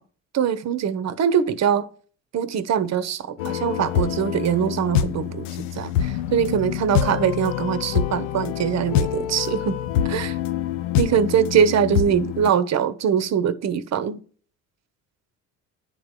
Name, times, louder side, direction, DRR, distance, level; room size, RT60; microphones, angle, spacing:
voice 1, 0.3-1.9 2.3-9.8 10.0-10.4 11.0-14.2, right 8 dB, 45° right, 0.9 m, -22 dB
sound 1, 3.4-12.5, left 10 dB, 80° left, 0.5 m, -26 dB
10.0 x 3.7 x 6.4 m
hypercardioid pair, 65°, 38 cm